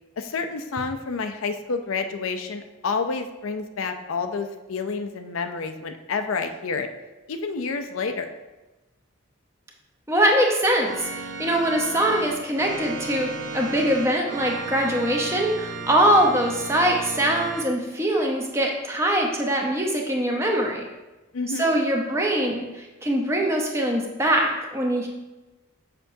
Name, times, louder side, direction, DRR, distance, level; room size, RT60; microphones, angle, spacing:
voice 1, 0.2-6.9 7.3-8.3 21.3-21.8, left 4 dB, 85° left, 7 dB, 0.5 m, -29 dB
voice 2, 10.1-20.9 21.6-25.1, right 1 dB, 15° right, 0 dB, 0.7 m, -23 dB
Organ, 10.8-17.7, right 3 dB, 60° right, 0.7 m, -34 dB
6.6 x 5.5 x 2.7 m, 1.1 s
head